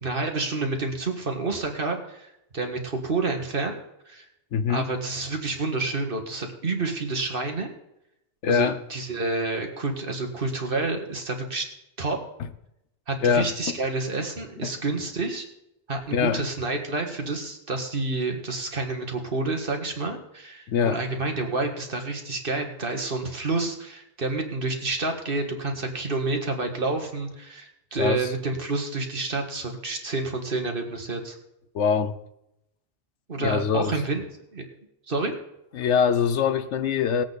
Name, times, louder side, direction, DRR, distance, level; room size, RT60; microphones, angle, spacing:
voice 1, 0.0-3.8 4.1-4.3 4.7-7.7 8.5-11.7 12.0-12.2 13.1-15.4 15.9-31.4 33.3-34.2 34.5-34.6 35.1-35.3, right 3 dB, 50° right, 4 dB, 1.8 m, -29 dB
voice 2, 4.5-4.9 8.4-8.8 13.2-13.8 14.6-14.7 16.1-16.4 20.7-21.0 28.0-28.3 31.7-32.2 33.4-33.9 35.7-37.2, left 7 dB, 80° left, 12 dB, 1.1 m, -23 dB
18.5 x 8.4 x 4.1 m, 0.83 s
omnidirectional pair, 1.2 m